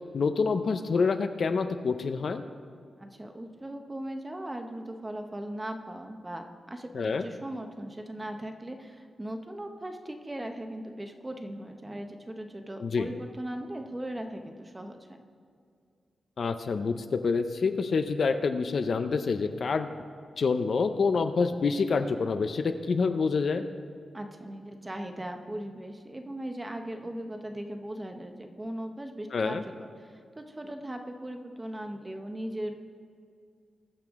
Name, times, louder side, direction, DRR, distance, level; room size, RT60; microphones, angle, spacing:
voice 1, 0.1-2.4 6.9-7.2 12.8-13.1 16.4-19.9 20.4-23.6 29.3-29.6, left 4 dB, 50° left, 8 dB, 0.5 m, -27 dB
voice 2, 3.0-15.0 24.1-32.8, right 1 dB, 15° right, 5 dB, 0.8 m, -38 dB
20.5 x 6.8 x 3.6 m, 2.3 s
wide cardioid pair, 165°, 0 cm